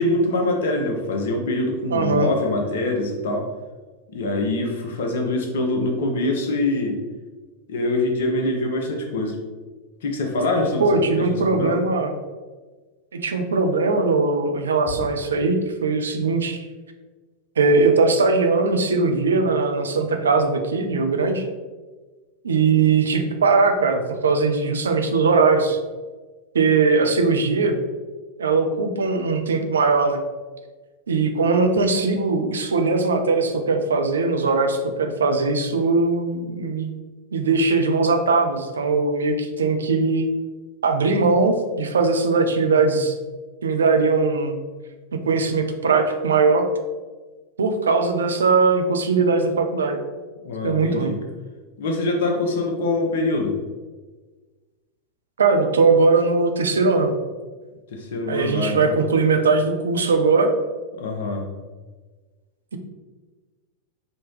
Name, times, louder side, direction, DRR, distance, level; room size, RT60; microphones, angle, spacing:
voice 1, 0.0-3.5 4.1-7.0 7.7-9.4 10.0-10.8 11.2-11.8 50.4-51.1 51.8-53.6 57.9-59.0 61.0-61.5, left 2 dB, 60° left, 2 dB, 0.8 m, -24 dB
voice 2, 1.9-2.3 10.8-12.1 13.1-16.7 17.6-21.4 22.4-25.8 26.5-27.8 28.4-30.2 31.1-36.9 37.3-40.3 40.8-43.1 43.6-44.6 45.1-46.6 47.6-50.0 50.6-51.1 55.4-57.1 58.3-60.5, right 4 dB, 70° right, 5 dB, 0.5 m, -20 dB
5.1 x 2.9 x 3.1 m, 1.3 s
figure-of-eight pair, 90°, 0 cm